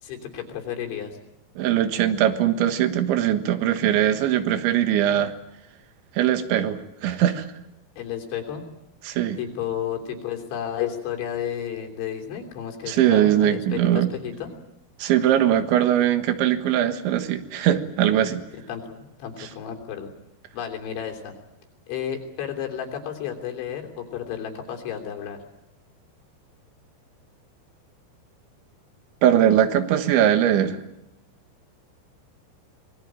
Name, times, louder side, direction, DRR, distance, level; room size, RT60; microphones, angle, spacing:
voice 1, 0.0-1.2 8.0-8.7 9.4-14.5 18.7-20.1 20.5-21.3 21.9-25.4, left 9 dB, 80° left, 3 dB, 5.6 m, -32 dB
voice 2, 1.6-5.3 6.2-7.5 9.1-9.4 12.9-14.1 15.0-18.4 29.2-30.8, right 11 dB, 85° right, 9 dB, 3.8 m, -21 dB
24.5 x 20.5 x 8.9 m, 0.88 s
omnidirectional pair, 5.3 m